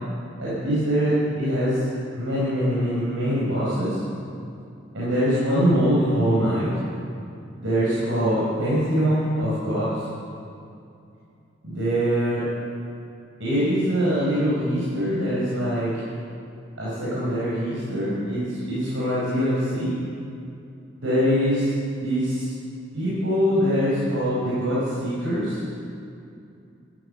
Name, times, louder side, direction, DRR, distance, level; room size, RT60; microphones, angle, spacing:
voice 1, 0.4-1.9 2.1-4.0 4.9-6.7 7.6-10.0 11.6-12.4 13.4-15.9 16.8-19.9 21.0-22.5 22.9-25.6, equal, 75° right, -9 dB, 5.0 m, -23 dB
14.0 x 14.0 x 6.8 m, 2.6 s
head